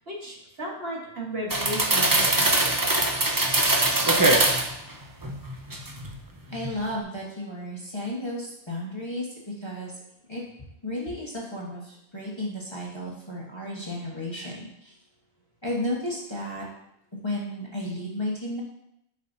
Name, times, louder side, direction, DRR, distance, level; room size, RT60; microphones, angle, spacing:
voice 1, 0.0-3.1, right 1 dB, 50° right, -3 dB, 1.6 m, -35 dB
sound 1, 1.5-4.7 5.2-6.1 6.5-6.7, right 2 dB, 25° right, 0.5 m, -22 dB
voice 2, 6.5-9.3 9.6-9.9 10.3-10.4 10.8-14.9 15.6-16.7 17.1-18.6, left 1 dB, 20° left, -5 dB, 1.2 m, -33 dB
8.9 x 5.7 x 2.7 m, 0.80 s
omnidirectional pair, 1.4 m